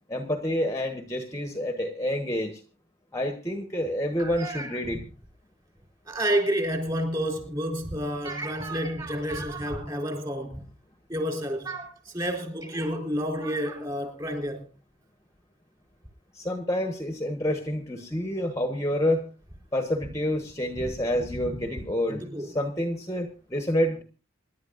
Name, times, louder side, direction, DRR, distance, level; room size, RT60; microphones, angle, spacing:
voice 1, 0.1-2.6 3.1-5.0 16.3-19.3 19.7-24.0, left 1 dB, 15° left, 1.1 m, -28 dB
voice 2, 4.2-4.8 6.1-10.6 11.1-14.6 20.8-20.9 21.4-21.5 22.1-22.5, equal, 20° right, 3.8 m, -30 dB
26.5 x 11.0 x 2.5 m
head